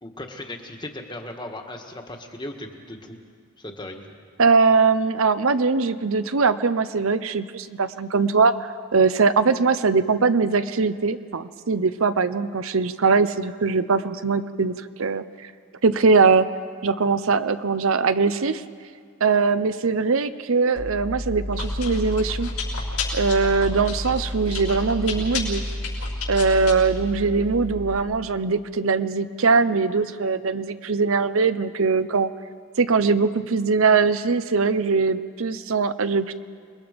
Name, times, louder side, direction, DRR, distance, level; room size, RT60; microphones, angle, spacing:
voice 1, 0.0-3.2 3.6-4.1, left 1 dB, 20° left, 4 dB, 1.5 m, -37 dB
voice 2, 4.4-8.5 8.9-15.5 15.8-16.5 16.8-18.6 19.2-22.5 23.1-25.6 26.3-32.3 32.8-36.3, right 4 dB, 70° right, 12 dB, 0.7 m, -21 dB
Chewing mastication, 20.7-28.0, left 2 dB, 85° left, 5.7 m, -30 dB
28.5 x 21.5 x 5.2 m, 2.1 s
head